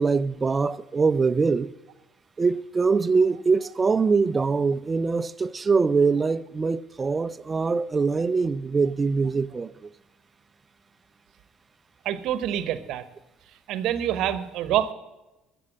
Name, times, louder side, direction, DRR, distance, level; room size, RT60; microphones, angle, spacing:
voice 1, 0.0-1.7 2.4-9.9, right 4 dB, 30° right, 0.6 m, -23 dB
voice 2, 12.0-13.0 13.7-14.9, right 11 dB, 70° right, 1.0 m, -26 dB
14.5 x 7.0 x 7.4 m
supercardioid pair, 75°, 0 cm